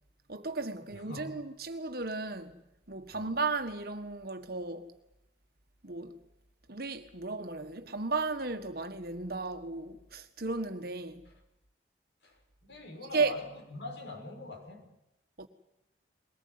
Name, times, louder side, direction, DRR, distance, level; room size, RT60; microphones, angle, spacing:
voice 1, 0.3-2.6 2.9-4.9 5.8-6.2 6.7-11.2 13.1-13.3 15.4-15.5, right 3 dB, 55° right, 1.6 m, -34 dB
voice 2, 0.9-1.4 3.1-3.4 11.3-11.4 12.2-14.9, left 3 dB, 80° left, 6.3 m, -44 dB
22.0 x 19.0 x 9.6 m
head